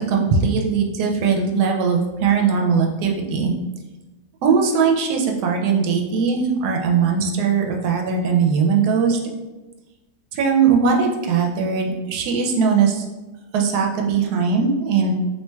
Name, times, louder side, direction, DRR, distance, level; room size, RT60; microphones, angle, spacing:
voice 1, 0.0-3.5 4.4-9.2 10.3-13.1 13.5-15.2, right 5 dB, 85° right, 2 dB, 1.1 m, -20 dB
4.3 x 2.8 x 2.2 m, 1.1 s
omnidirectional pair, 1.7 m